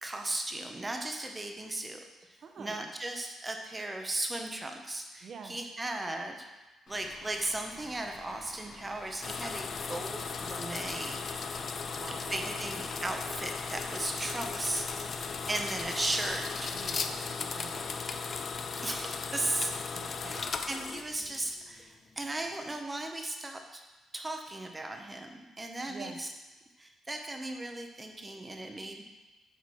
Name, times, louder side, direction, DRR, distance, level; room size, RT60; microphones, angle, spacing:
voice 1, 0.0-6.5 6.9-11.2 12.3-14.9 15.5-16.8 18.8-19.7 20.2-23.8 24.1-26.3 26.8-29.0, right 2 dB, 20° right, 4 dB, 0.8 m, -36 dB
voice 2, 2.4-2.9 5.2-5.6 11.8-12.7 16.7-18.0 19.9-20.7 25.9-26.2, right 5 dB, 55° right, 5 dB, 0.8 m, -47 dB
Bus / Idling, 6.9-16.9, left 2 dB, 65° left, 2.3 m, -50 dB
sound 1, 9.2-21.8, left 5 dB, 50° left, 0.5 m, -37 dB
8.2 x 4.0 x 4.8 m, 1.1 s
cardioid pair, 90°, 0 cm